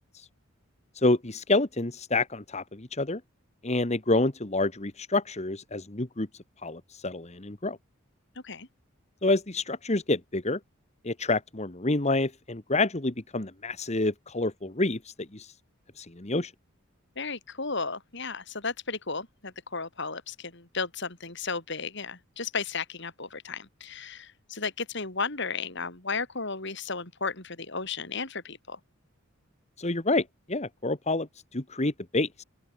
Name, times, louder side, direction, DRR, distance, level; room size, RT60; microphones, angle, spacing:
voice 1, 0.9-3.2 3.6-6.3 6.6-7.8 9.2-10.6 11.0-15.5 16.0-16.5 29.8-32.4, left 2 dB, 30° left, 1.5 m, -28 dB
voice 2, 17.2-28.8, left 4 dB, 55° left, 4.5 m, -34 dB
open air
head